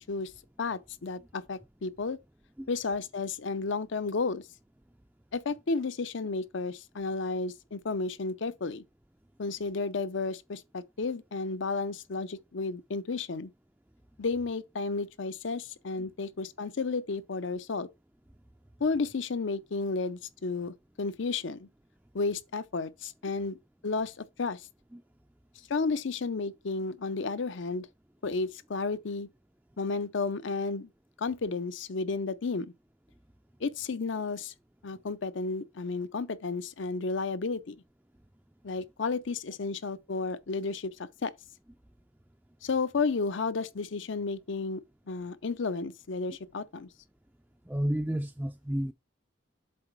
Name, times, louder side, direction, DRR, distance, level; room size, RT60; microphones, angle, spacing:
voice 1, 0.6-2.2 2.7-4.4 5.3-8.8 9.4-13.5 14.2-17.9 18.8-21.7 22.1-23.6 23.8-24.7 25.7-27.9 28.2-29.3 29.8-30.9 31.2-32.7 33.6-34.5 34.8-37.8 38.6-40.9 41.2-41.3 42.6-44.8 45.1-46.9, left 4 dB, 65° left, 0.6 m, -32 dB
voice 2, 47.6-48.9, equal, 5° right, 0.3 m, -31 dB
7.7 x 3.9 x 4.5 m
head